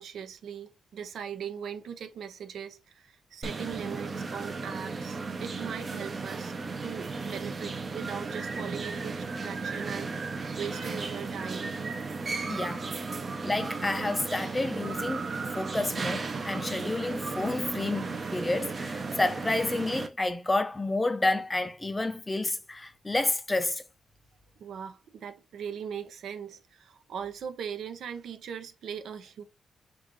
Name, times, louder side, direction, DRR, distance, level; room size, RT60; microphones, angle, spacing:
voice 1, 0.0-6.5 6.8-11.7 24.6-29.4, right 7 dB, 75° right, 0.8 m, -40 dB
sound 1, 3.4-20.1, right 4 dB, 35° right, 0.7 m, -35 dB
voice 2, 12.5-12.9 13.4-23.8, left 2 dB, 15° left, 0.5 m, -30 dB
6.2 x 2.5 x 3.1 m
wide cardioid pair, 150°, 0 cm